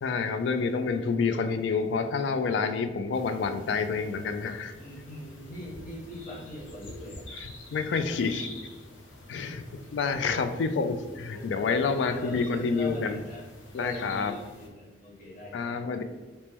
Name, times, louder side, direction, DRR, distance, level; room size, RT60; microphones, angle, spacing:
voice 1, 0.0-4.7 7.7-8.5 9.3-9.6 9.9-13.2 13.7-14.3 15.5-16.0, left 4 dB, 65° left, 9 dB, 0.3 m, -28 dB
sound 1, 3.1-14.7, left 2 dB, 85° left, 0.7 m, -47 dB
voice 2, 4.8-7.3 9.4-9.7 10.1-10.4 11.3-13.4 13.7-15.9, left 1 dB, 45° left, -5 dB, 1.1 m, -42 dB
3.0 x 2.9 x 3.4 m, 1.3 s
head